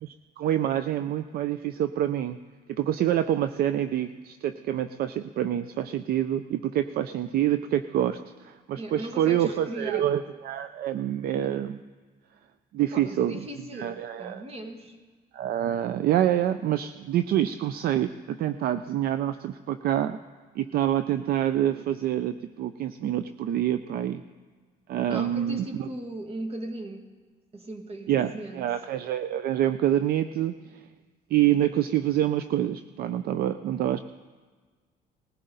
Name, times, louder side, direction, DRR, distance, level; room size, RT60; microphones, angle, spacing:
voice 1, 0.0-2.4 2.7-11.8 12.7-13.5 13.7-14.4 15.3-20.2 20.6-24.2 24.9-25.9 28.1-30.8 31.3-34.0, right 11 dB, 65° right, 11 dB, 0.5 m, -27 dB
voice 2, 8.8-10.1 12.8-15.0 25.1-27.0 27.5-28.7, right 1 dB, 35° right, 4 dB, 2.0 m, -38 dB
20.0 x 15.5 x 3.9 m, 1.4 s
cardioid pair, 110°, 17 cm